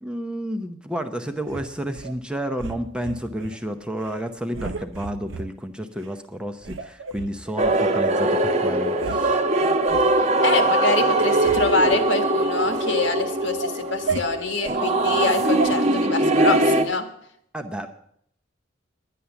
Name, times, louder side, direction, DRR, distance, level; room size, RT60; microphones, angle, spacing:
voice 1, 0.0-9.4 17.5-17.9, equal, 5° right, 6 dB, 0.7 m, -31 dB
sound 1, 1.5-2.1 2.6-3.6 4.0-4.2 4.5-5.5 6.0-6.1 6.6-7.8 8.4-8.5 8.8-9.2 9.5-10.1 10.6-10.9 11.1-12.9 13.3-14.8 15.6-15.7, right 3 dB, 85° right, 0.7 m, -33 dB
sound 2, 7.6-16.8, right 2 dB, 35° right, 1.0 m, -21 dB
voice 2, 10.4-17.1, left 3 dB, 75° left, 6 dB, 1.6 m, -25 dB
11.0 x 10.0 x 7.0 m, 0.70 s
head